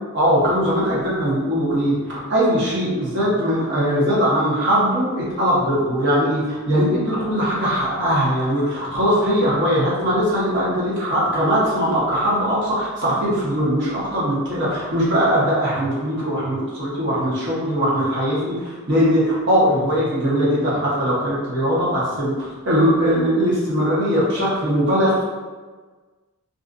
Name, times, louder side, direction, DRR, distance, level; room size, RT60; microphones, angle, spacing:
voice 1, 0.1-25.2, equal, 55° right, -7 dB, 0.9 m, -20 dB
2.5 x 2.4 x 2.4 m, 1.4 s
head